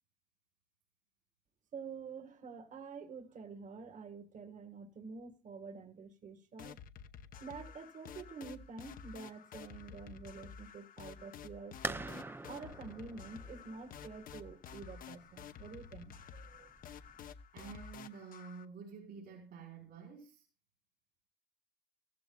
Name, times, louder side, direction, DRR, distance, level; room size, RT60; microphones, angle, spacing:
voice 1, 1.7-6.8 7.4-16.7, right 5 dB, 50° right, 1.8 m, -48 dB
sound 1, 6.6-18.7, left 7 dB, 55° left, 0.9 m, -51 dB
sound 2, 11.8-17.3, right 3 dB, 15° right, 0.6 m, -46 dB
voice 2, 17.5-20.5, right 6 dB, 70° right, 5.0 m, -50 dB
14.5 x 14.5 x 2.3 m
cardioid pair, 110°, 17 cm